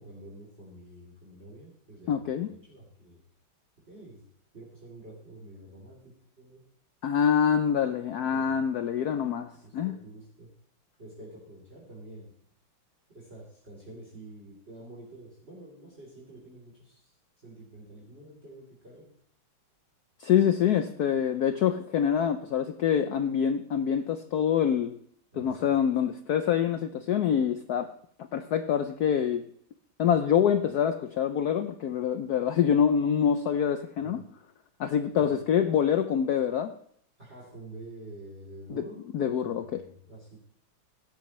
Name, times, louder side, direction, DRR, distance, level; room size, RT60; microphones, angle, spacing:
voice 1, 0.0-3.2 3.9-4.2 4.5-6.6 8.3-8.6 9.5-10.5 11.0-12.3 13.1-19.1 25.3-25.8 34.0-34.2 35.2-35.4 37.2-39.0 39.4-40.4, right 1 dB, 25° right, 3.5 m, -48 dB
voice 2, 2.1-2.5 7.0-10.0 20.2-25.0 25.4-27.9 28.2-29.5 30.0-34.2 34.8-36.8 38.7-38.8 39.1-39.8, left 8 dB, 85° left, 0.8 m, -26 dB
16.0 x 13.0 x 3.2 m
omnidirectional pair, 2.4 m